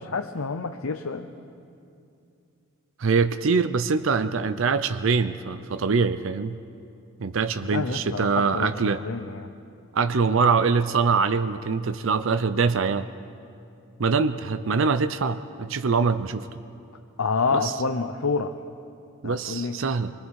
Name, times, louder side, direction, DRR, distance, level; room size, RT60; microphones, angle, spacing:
voice 1, 0.0-1.3 7.6-9.5 17.2-18.5 19.2-19.8, left 4 dB, 80° left, 6 dB, 0.8 m, -28 dB
voice 2, 3.0-6.6 7.2-9.0 9.9-13.1 14.0-16.5 17.5-17.7 19.2-20.1, right 5 dB, 65° right, 11 dB, 0.6 m, -23 dB
24.5 x 23.0 x 4.8 m, 2.6 s
head